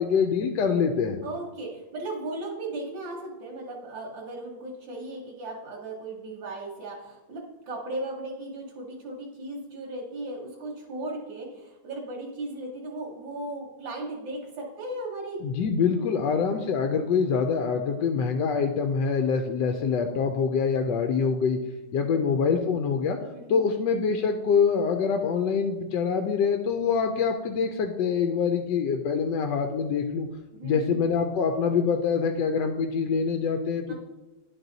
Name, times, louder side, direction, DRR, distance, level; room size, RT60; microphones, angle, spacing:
voice 1, 0.0-1.2 15.4-21.6 21.9-23.2 23.5-30.3 30.6-33.9, left 6 dB, 75° left, 5 dB, 1.2 m, -25 dB
voice 2, 1.2-15.5 15.8-16.0 21.9-22.1 23.3-23.7 30.5-31.0 33.9-34.0, right 2 dB, 85° right, -3 dB, 2.0 m, -36 dB
11.0 x 4.0 x 3.9 m, 1.1 s
omnidirectional pair, 2.0 m